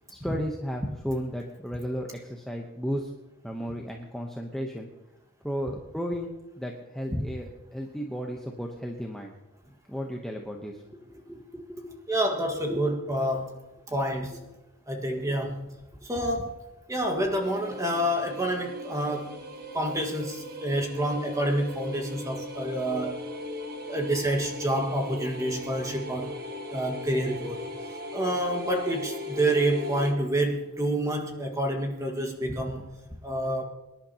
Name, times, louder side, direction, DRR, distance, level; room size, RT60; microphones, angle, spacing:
voice 1, 0.1-3.1 3.4-4.9 5.4-9.3 9.9-12.0 12.7-12.9 14.3-14.4 15.3-15.4, equal, ahead, 0 dB, 0.9 m, -34 dB
voice 2, 12.1-13.6 13.9-14.4 14.9-15.7 16.0-16.5 16.9-19.3 19.7-23.2 23.9-26.3 26.7-27.7 28.1-32.9 33.2-33.6, right 1 dB, 15° right, 2 dB, 1.7 m, -28 dB
sound 1, 17.4-30.1, left 1 dB, 45° right, 1.5 m, -38 dB
24.0 x 11.0 x 2.9 m, 1.0 s
head